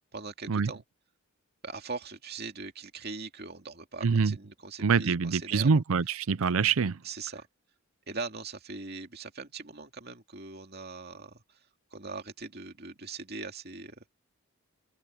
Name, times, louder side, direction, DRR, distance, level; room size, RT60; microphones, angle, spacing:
voice 1, 0.1-0.8 1.6-5.8 7.0-7.5 8.1-11.6 11.9-14.1, right 4 dB, 45° right, 2.6 m, -41 dB
voice 2, 4.0-4.3 4.8-7.0, right 5 dB, 70° right, 0.5 m, -25 dB
head